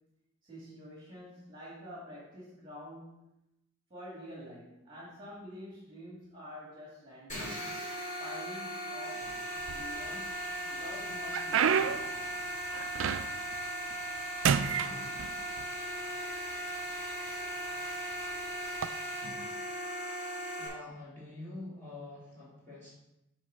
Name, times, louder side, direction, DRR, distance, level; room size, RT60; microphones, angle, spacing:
voice 1, 0.4-3.2 3.9-7.7 8.2-9.3 9.7-10.4 10.7-12.0, left 1 dB, 20° right, -6 dB, 1.9 m, -47 dB
sound 1, 7.3-20.7, right 1 dB, 35° left, 2.9 m, -38 dB
sound 2, 9.6-10.3 10.8-13.5 13.9-14.2 14.4-15.7 16.5-16.6 17.3-17.5 18.7-18.9, right 7 dB, 60° right, 0.3 m, -30 dB
voice 2, 20.6-22.9, left 2 dB, 10° left, -9 dB, 3.0 m, -46 dB
6.3 x 4.5 x 6.3 m, 0.90 s
head